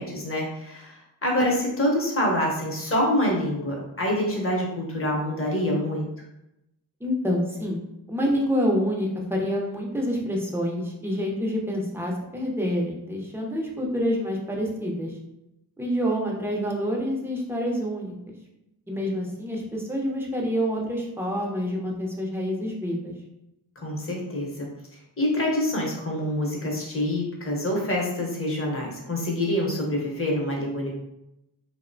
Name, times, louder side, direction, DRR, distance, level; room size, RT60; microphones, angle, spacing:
voice 1, 0.0-6.1 23.8-24.7 25.2-30.9, left 1 dB, 30° left, -2 dB, 0.9 m, -26 dB
voice 2, 7.0-7.8 8.1-15.1 15.8-18.3 18.9-23.1, equal, 5° right, -2 dB, 0.6 m, -27 dB
2.7 x 2.1 x 2.6 m, 0.87 s
cardioid pair, 55°, 44 cm